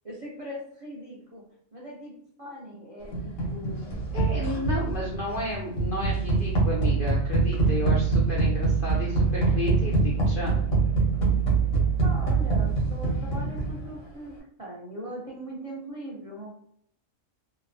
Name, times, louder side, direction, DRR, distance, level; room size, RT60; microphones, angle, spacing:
voice 1, 0.0-1.4 1.7-2.1 2.4-4.0 12.0-16.5, right 1 dB, 55° right, -4 dB, 0.3 m, -40 dB
sound 1, 3.1-14.0, right 4 dB, 85° left, 1.3 m, -25 dB
voice 2, 4.1-10.6, left 2 dB, 70° left, -2 dB, 0.5 m, -32 dB
2.9 x 2.1 x 2.5 m, 0.67 s
omnidirectional pair, 1.4 m